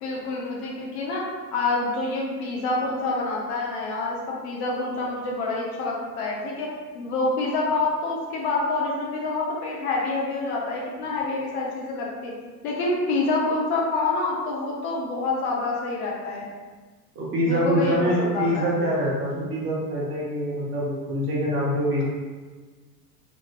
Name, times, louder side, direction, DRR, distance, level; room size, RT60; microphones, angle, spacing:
voice 1, 0.0-1.3 1.5-4.2 4.4-6.7 6.9-12.3 12.6-16.5 17.5-18.7, left 3 dB, 45° left, -3 dB, 0.6 m, -27 dB
voice 2, 17.1-22.0, equal, 25° right, -5 dB, 0.9 m, -25 dB
3.0 x 2.5 x 2.5 m, 1.4 s
figure-of-eight pair, 90°, 48 cm